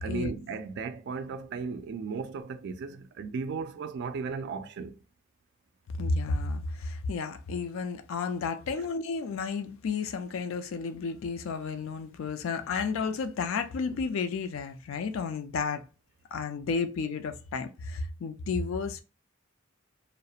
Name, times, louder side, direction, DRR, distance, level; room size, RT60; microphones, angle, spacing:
voice 1, 0.0-5.0, right 5 dB, 60° right, 0.3 m, -35 dB
voice 2, 6.0-15.8 16.3-19.0, left 4 dB, 75° left, 0.3 m, -32 dB
2.3 x 2.0 x 2.7 m
head